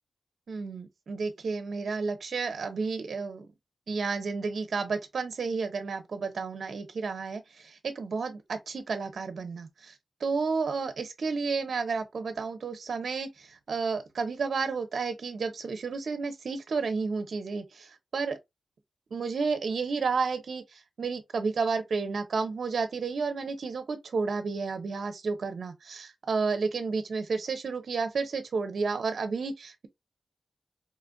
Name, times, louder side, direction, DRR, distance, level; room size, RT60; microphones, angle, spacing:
voice 1, 0.5-3.5 3.9-9.9 10.2-18.4 19.1-29.9, right 4 dB, 75° right, 0.8 m, -31 dB
4.2 x 2.5 x 2.2 m
cardioid pair, 65°, 0 cm